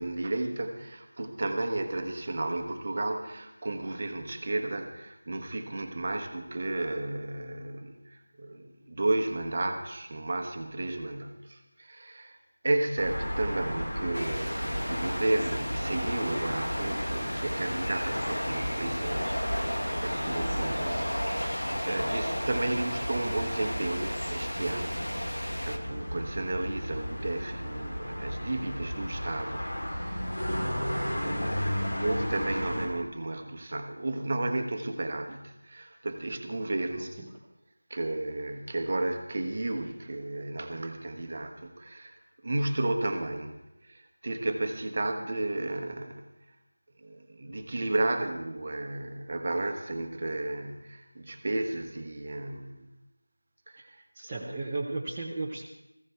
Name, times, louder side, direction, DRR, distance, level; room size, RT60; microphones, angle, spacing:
voice 1, 0.0-12.4 12.6-25.0 25.3-37.2 37.9-46.3 47.0-52.9 53.7-54.7, right 2 dB, 30° right, 5 dB, 1.1 m, -33 dB
sound 1, 13.0-32.9, equal, 55° left, 3.6 m, -34 dB
sound 2, 14.1-25.8, equal, 85° left, 1.7 m, -35 dB
voice 2, 37.0-37.3 54.1-55.6, right 3 dB, 10° right, -6 dB, 0.7 m, -35 dB
18.0 x 15.5 x 3.4 m, 0.93 s
figure-of-eight pair, 170°, 0 cm